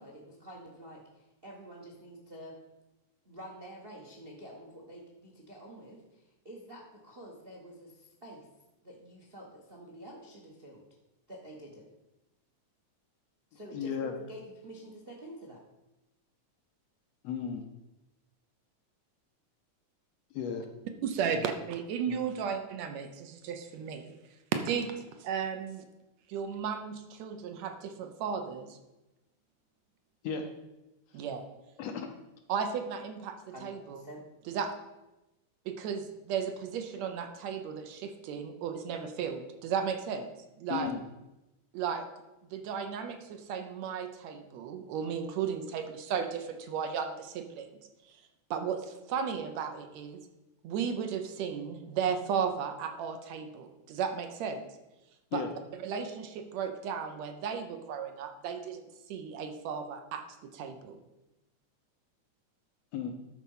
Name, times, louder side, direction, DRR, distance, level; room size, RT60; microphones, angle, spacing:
voice 1, 0.0-2.5 3.2-8.5 8.8-10.8 11.3-11.9 13.5-15.6 33.5-34.2, right 1 dB, 40° right, 0 dB, 0.7 m, -48 dB
voice 2, 13.7-14.1 17.2-17.6 20.3-20.7 21.4-21.5 22.1-22.2 30.2-30.4 31.8-32.1 40.7-41.0 55.3-55.5 62.9-63.1, left 7 dB, 70° left, 4 dB, 1.7 m, -34 dB
voice 3, 21.0-24.2 24.5-25.9 26.3-28.8 31.1-31.4 32.5-34.0 34.5-34.7 35.7-40.3 40.6-40.9 41.7-42.1 42.5-47.7 48.5-50.2 50.6-54.6 55.3-55.5 55.8-61.0, right 7 dB, 75° right, 6 dB, 1.9 m, -35 dB
12.0 x 4.4 x 5.5 m, 0.99 s
omnidirectional pair, 3.4 m